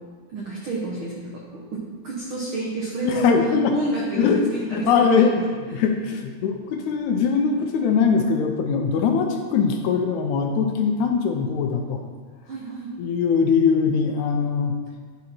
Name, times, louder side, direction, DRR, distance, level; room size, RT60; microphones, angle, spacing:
voice 1, 0.3-1.4 1.7-3.3 3.7-5.3 12.5-12.9, right 3 dB, 75° right, -4 dB, 1.2 m, -29 dB
voice 2, 3.0-3.8 4.2-5.4 5.7-12.0 13.0-14.7, left 6 dB, 80° left, 4 dB, 1.9 m, -21 dB
9.4 x 4.1 x 4.2 m, 1.5 s
omnidirectional pair, 3.6 m